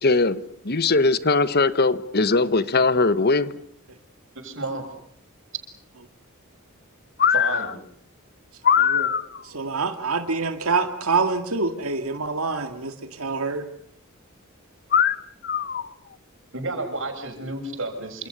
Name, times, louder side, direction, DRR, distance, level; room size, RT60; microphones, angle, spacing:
voice 1, 0.0-3.5 7.2-7.6 8.6-9.4 14.9-15.2 15.4-15.9, left 4 dB, 50° left, 1.2 m, -20 dB
voice 2, 4.4-4.9 7.3-7.7 9.5-9.6 16.5-18.3, right 2 dB, 65° right, 6.8 m, -31 dB
voice 3, 9.5-13.6, right 4 dB, 90° right, 2.2 m, -26 dB
28.5 x 27.0 x 6.8 m
head